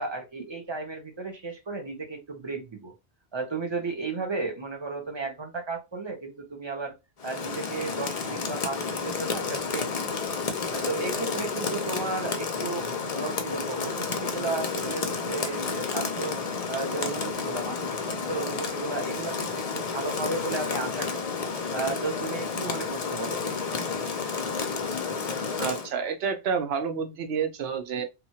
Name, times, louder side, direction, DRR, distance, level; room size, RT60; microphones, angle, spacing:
voice 1, 0.0-2.9 3.3-6.9 7.2-10.2 10.7-16.4 16.7-21.3 21.7-23.5, right 3 dB, 30° right, 0.6 m, -34 dB
Rain, 7.2-25.9, left 5 dB, 50° left, 0.5 m, -31 dB
voice 2, 25.6-28.0, right 6 dB, 70° right, 0.8 m, -29 dB
2.9 x 2.3 x 2.7 m
omnidirectional pair, 1.1 m